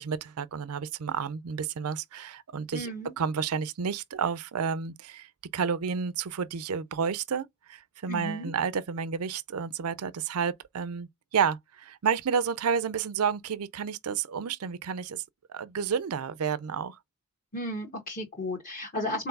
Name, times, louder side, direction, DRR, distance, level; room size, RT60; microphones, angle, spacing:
voice 1, 0.0-15.2 15.5-17.0 19.0-19.2, right 6 dB, 85° right, 0.5 m, -31 dB
voice 2, 2.7-3.1 8.1-8.5 17.5-19.3, left 1 dB, 40° left, 1.3 m, -34 dB
4.5 x 3.9 x 5.3 m
head